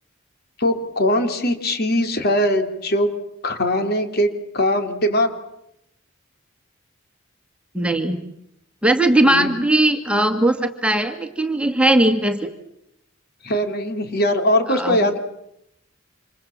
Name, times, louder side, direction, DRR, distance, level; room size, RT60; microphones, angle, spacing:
voice 1, 0.6-3.1 3.4-4.3 4.5-5.3 9.2-9.5 13.4-15.2, left 1 dB, 50° left, 6 dB, 3.7 m, -21 dB
voice 2, 7.7-8.2 8.8-12.5 14.7-15.0, right 1 dB, 5° right, 6 dB, 2.2 m, -19 dB
29.5 x 27.5 x 7.4 m, 0.79 s
head